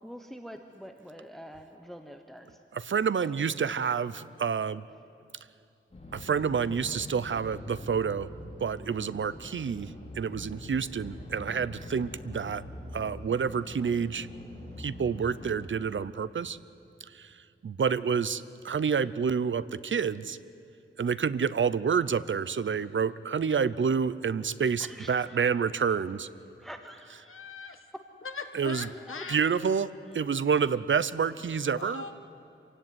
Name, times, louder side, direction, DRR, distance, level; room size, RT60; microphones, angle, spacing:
voice 1, 0.0-2.6 3.2-3.3 24.8-25.5 25.8-25.9 26.6-27.4 28.9-29.2, equal, ahead, 6 dB, 1.2 m, -46 dB
voice 2, 2.7-4.8 6.1-8.3 8.6-12.6 12.9-14.3 14.8-16.6 17.1-17.3 17.6-20.4 21.0-26.3 28.5-28.9 29.3-32.0, right 6 dB, 65° right, 16 dB, 0.7 m, -28 dB
sound 1, 5.9-15.5, left 1 dB, 30° left, 4.7 m, -44 dB
voice 3, 27.3-27.8 28.2-29.4 31.8-32.2, left 5 dB, 80° left, 6 dB, 1.7 m, -40 dB
27.0 x 16.5 x 9.6 m, 2.7 s
wide cardioid pair, 105°, 21 cm